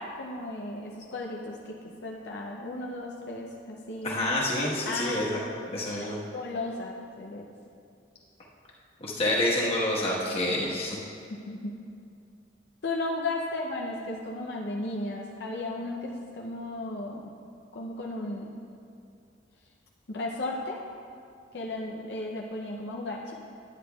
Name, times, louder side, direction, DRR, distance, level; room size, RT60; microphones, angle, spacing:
voice 1, 0.0-4.3 4.6-5.3 6.0-7.5 10.3-10.6 11.3-11.7 12.8-17.3 17.7-18.5 20.1-20.8 21.5-23.3, left 2 dB, 65° left, -2 dB, 0.6 m, -35 dB
voice 2, 4.0-5.4 5.7-6.2 9.0-11.0, left 1 dB, 30° left, -5 dB, 1.3 m, -28 dB
10.5 x 9.3 x 2.3 m, 2.5 s
head